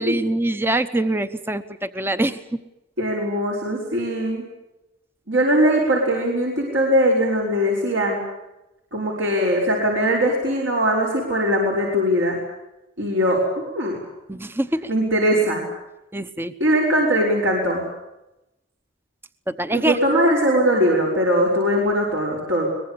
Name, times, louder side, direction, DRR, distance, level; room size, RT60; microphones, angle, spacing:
voice 1, 0.0-2.4 14.3-14.8 16.1-16.5 19.5-20.0, right 1 dB, 10° right, 11 dB, 0.9 m, -24 dB
voice 2, 3.0-4.4 5.3-8.2 8.9-12.4 13.0-14.0 14.9-15.6 16.6-17.8 19.7-22.7, equal, 70° right, -2 dB, 5.7 m, -20 dB
23.0 x 21.0 x 8.5 m, 0.92 s
head